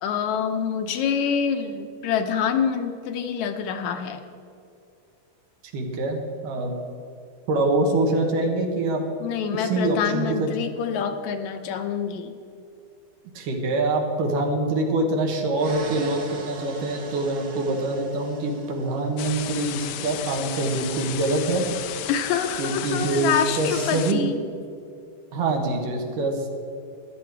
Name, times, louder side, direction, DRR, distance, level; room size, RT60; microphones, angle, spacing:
voice 1, 0.0-4.2 9.2-12.3 22.1-24.4, left 7 dB, 70° left, 7 dB, 2.0 m, -26 dB
voice 2, 5.7-6.7 7.5-9.0 9.5-10.5 13.3-21.6 22.6-24.2 25.3-26.5, right 2 dB, 85° right, 2 dB, 3.2 m, -25 dB
sound 1, 15.5-19.4, right 3 dB, 50° right, 1.0 m, -40 dB
sound 2, 19.2-24.1, left 12 dB, 85° left, 2.2 m, -34 dB
14.0 x 12.5 x 4.7 m, 2.6 s
omnidirectional pair, 3.7 m